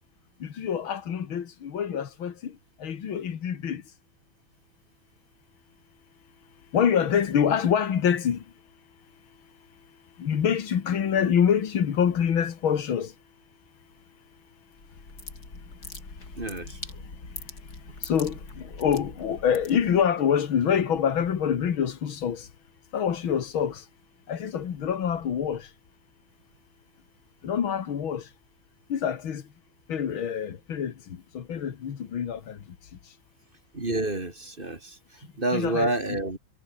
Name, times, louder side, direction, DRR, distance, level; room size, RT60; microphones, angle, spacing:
voice 1, 0.4-2.5 2.8-3.8 6.7-8.4 10.2-13.1 18.0-18.4 18.8-22.4 22.9-23.8 24.3-25.6 27.4-28.2 28.9-29.4 29.9-30.9 31.3-32.6 35.5-36.2, left 8 dB, 90° left, 2.5 m, -26 dB
sound 1, 14.7-20.1, left 3 dB, 50° left, 4.9 m, -42 dB
voice 2, 16.4-16.8 33.7-34.9 35.4-36.4, right 2 dB, 25° right, 2.8 m, -28 dB
omnidirectional pair, 2.2 m